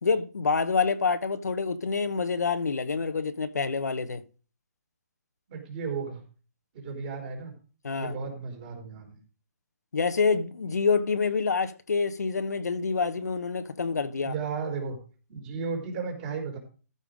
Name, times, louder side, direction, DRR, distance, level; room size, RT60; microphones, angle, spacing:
voice 1, 0.0-4.2 7.8-8.2 9.9-14.3, left 5 dB, 90° left, 1.1 m, -27 dB
voice 2, 5.5-6.2 6.7-7.5 8.0-9.2 14.2-15.0 15.3-16.6, right 5 dB, 30° right, 4.3 m, -34 dB
14.0 x 5.5 x 5.0 m
hypercardioid pair, 160°, 9 cm